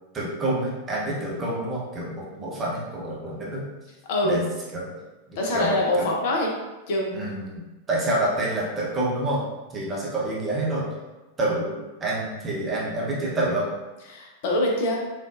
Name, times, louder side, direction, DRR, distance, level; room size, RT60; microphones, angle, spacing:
voice 1, 0.1-3.6 4.2-4.4 4.7-4.9 5.3-6.1 7.1-9.4 9.7-10.8 11.4-13.7, right 1 dB, 20° right, -5 dB, 0.9 m, -28 dB
voice 2, 4.1-4.4 5.4-6.5 6.9-7.2 14.1-15.0, left 1 dB, 50° left, -1 dB, 0.6 m, -24 dB
3.6 x 2.4 x 2.4 m, 1.1 s
figure-of-eight pair, 90°, 0 cm